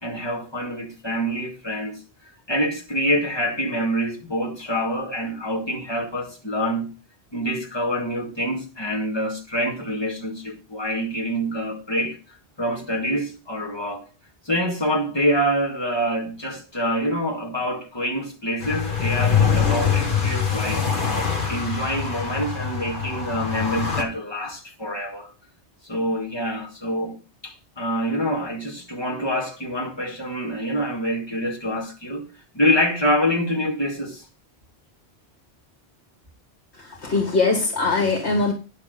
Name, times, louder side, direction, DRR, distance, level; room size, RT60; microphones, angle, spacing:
voice 1, 0.0-6.9 7.3-14.1 14.5-20.9 21.5-25.3 25.9-27.2 27.4-32.3 32.5-34.2, equal, 25° left, 2.3 m, -26 dB
sound 1, 18.6-24.0, left 6 dB, 50° left, 1.6 m, -23 dB
voice 2, 36.7-38.5, left 3 dB, 80° left, 2.2 m, -22 dB
10.5 x 6.7 x 5.1 m
omnidirectional pair, 1.1 m